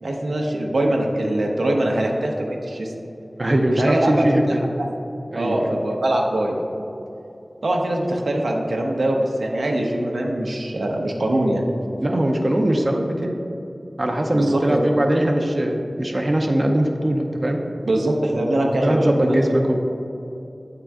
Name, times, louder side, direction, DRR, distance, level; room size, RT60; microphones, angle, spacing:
voice 1, 0.0-2.9 3.8-4.3 4.8-4.9 5.3-6.6 7.6-11.6 14.3-14.9 17.9-19.4, right 1 dB, 90° right, 0 dB, 0.7 m, -22 dB
voice 2, 3.4-4.6 5.3-5.7 12.0-13.3 14.0-17.6 18.8-19.8, right 1 dB, 40° right, 2 dB, 0.5 m, -21 dB
8.4 x 3.7 x 3.4 m, 2.8 s
wide cardioid pair, 55°, 0 cm